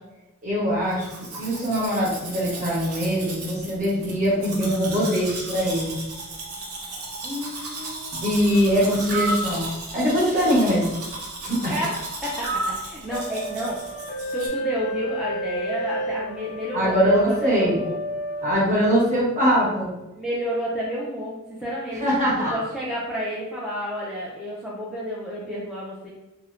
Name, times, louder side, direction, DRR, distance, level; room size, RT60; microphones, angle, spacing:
voice 1, 0.4-1.1 1.3-6.0 8.1-9.7 9.9-10.9 11.4-11.7 16.7-17.8 18.4-19.9 22.0-22.6, equal, 35° right, -7 dB, 1.1 m, -22 dB
Domestic sounds home sounds, 0.9-14.5, right 2 dB, 90° right, 0.7 m, -36 dB
voice 2, 7.2-8.9 11.7-13.8 14.3-18.0 20.2-22.1 22.5-26.1, equal, ahead, -7 dB, 0.3 m, -31 dB
sound 1, 9.1-9.5 12.4-12.8, right 2 dB, 60° right, 1.1 m, -26 dB
sound 2, 13.1-18.6, equal, 75° left, 0.4 m, -32 dB
3.0 x 2.0 x 2.4 m, 1.0 s
head